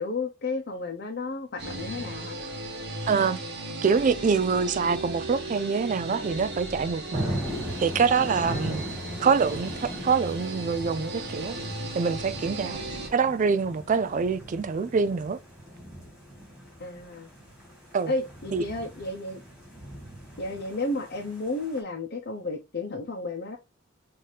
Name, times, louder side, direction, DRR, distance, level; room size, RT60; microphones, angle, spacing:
voice 1, 0.0-2.4 7.2-7.4 8.3-8.8 12.6-13.1 16.8-17.3 18.1-19.4 20.4-23.6, left 2 dB, 50° left, 0.8 m, -33 dB
sound 1, 1.6-13.1, right 2 dB, 55° right, 1.4 m, -36 dB
voice 2, 3.1-3.4 3.8-7.4 7.8-8.8 9.2-11.6 11.9-12.8 13.1-15.4 17.9-18.1 18.5-18.6, right 5 dB, 40° right, 0.3 m, -25 dB
sound 2, 7.1-21.8, equal, 5° right, 2.1 m, -39 dB
5.6 x 2.8 x 3.2 m
head